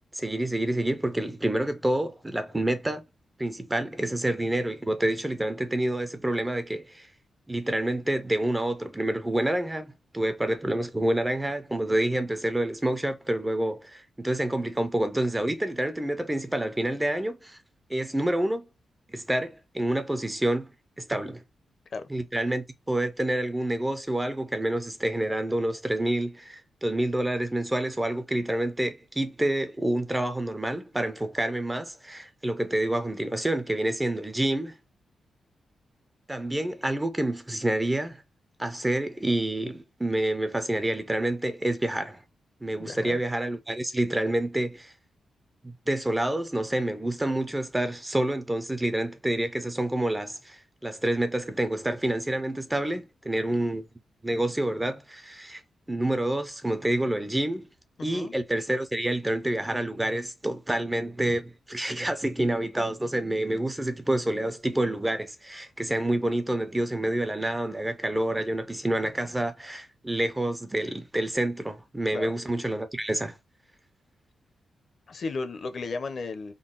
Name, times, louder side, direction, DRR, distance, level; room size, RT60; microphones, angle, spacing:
voice 1, 0.1-3.0 3.4-7.1 7.5-17.6 17.9-18.7 19.1-20.7 21.0-21.4 22.1-34.8 36.3-38.2 38.6-42.2 42.6-44.9 45.6-53.9 54.2-55.6 55.9-57.7 58.0-73.4, right 1 dB, 10° right, 0.4 m, -28 dB
voice 2, 42.8-43.2 58.0-58.3 72.1-72.3 75.1-76.5, left 4 dB, 45° left, 0.6 m, -34 dB
3.7 x 2.2 x 3.7 m
wide cardioid pair, 155°, 0 cm